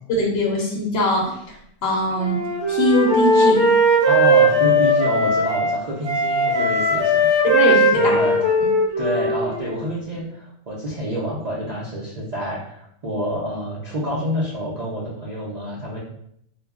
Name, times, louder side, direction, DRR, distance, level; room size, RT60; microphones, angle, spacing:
voice 1, 0.2-1.3 1.8-2.4 2.7-3.7 7.4-8.2, left 1 dB, 60° left, -1 dB, 0.8 m, -21 dB
Wind instrument woodwind instrument, 2.2-5.7 6.0-9.8, equal, 25° right, 0.6 m, -18 dB
voice 2, 4.0-7.4 7.9-8.4 9.0-16.0, equal, 75° right, -7 dB, 0.3 m, -27 dB
2.3 x 2.1 x 3.4 m, 0.71 s
omnidirectional pair, 1.4 m